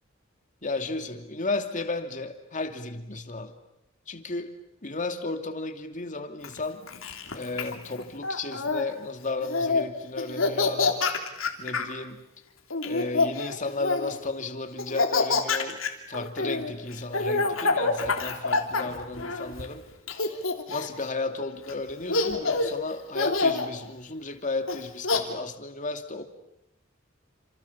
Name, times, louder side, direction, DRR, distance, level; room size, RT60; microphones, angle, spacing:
voice 1, 0.6-3.6 4.1-4.6 4.8-6.8 7.3-11.1 11.6-12.3 12.8-19.8 20.7-26.2, left 3 dB, 40° left, 6 dB, 2.7 m, -34 dB
Laughter, 6.4-8.8 9.4-9.8 10.2-11.9 12.7-14.2 14.8-19.7 20.1-21.0 21.7-21.8 22.1-22.7 23.1-23.7 24.7-25.2, left 3 dB, 85° left, 3.2 m, -27 dB
29.5 x 27.0 x 7.2 m, 0.85 s
head